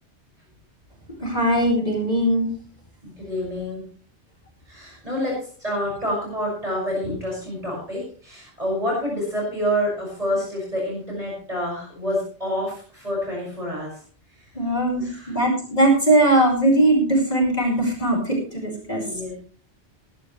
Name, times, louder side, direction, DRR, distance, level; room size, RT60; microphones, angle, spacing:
voice 1, 1.2-2.5 14.5-19.1, right 1 dB, 35° left, -1 dB, 5.1 m, -20 dB
voice 2, 3.0-3.8 4.7-14.0 14.4-14.5 15.0-15.4 19.0-19.3, equal, 35° right, -4 dB, 6.4 m, -28 dB
20.5 x 12.0 x 3.3 m, 0.43 s
omnidirectional pair, 1.2 m